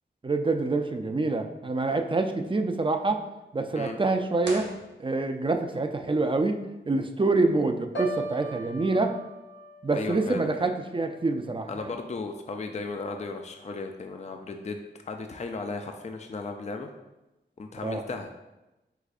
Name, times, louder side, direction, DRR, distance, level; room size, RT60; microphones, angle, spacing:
voice 1, 0.2-3.2 3.5-4.7 5.0-6.6 6.9-9.1 9.8-11.9 17.8-18.0, right 3 dB, 25° right, 6 dB, 0.4 m, -26 dB
sound 1, 4.4-5.6, right 2 dB, 70° right, 1.0 m, -41 dB
Piano, 8.0-11.9 12.3-12.7, right 1 dB, 70° left, 0.8 m, -39 dB
voice 2, 9.9-10.7 11.7-16.9 17.6-18.3, left 3 dB, 35° left, 5 dB, 0.4 m, -36 dB
4.8 x 3.9 x 2.4 m, 0.99 s
cardioid pair, 45°, 19 cm